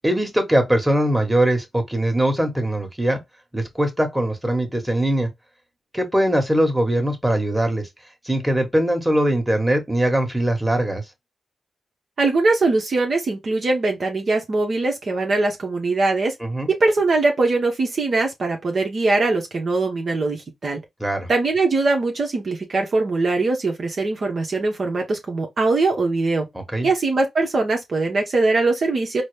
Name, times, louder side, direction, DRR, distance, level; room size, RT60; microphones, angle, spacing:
voice 1, 0.0-3.2 3.5-5.3 5.9-7.9 8.2-11.0 16.4-16.7 21.0-21.3 26.5-26.9, right 1 dB, 10° right, 1.4 m, -21 dB
voice 2, 12.2-16.3 16.7-20.8 21.3-26.5 26.8-29.2, right 3 dB, 55° right, 0.8 m, -21 dB
4.0 x 2.0 x 3.2 m
supercardioid pair, 45°, 0 cm